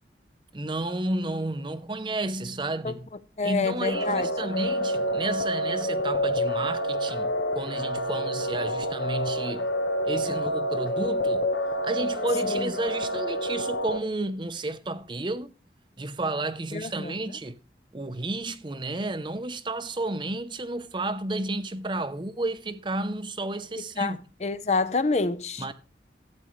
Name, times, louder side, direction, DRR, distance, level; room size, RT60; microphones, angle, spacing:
voice 1, 0.5-3.1 3.4-9.7 10.0-11.5 11.8-15.5 16.0-17.6 17.9-24.2 25.6-25.7, right 2 dB, 25° right, 0.6 m, -32 dB
voice 2, 3.4-4.3 12.5-12.7 16.7-17.2 24.0-24.1 24.4-25.7, left 3 dB, 40° left, 0.6 m, -27 dB
sound 1, 3.9-14.0, equal, 85° left, 1.2 m, -28 dB
13.5 x 9.0 x 3.2 m
head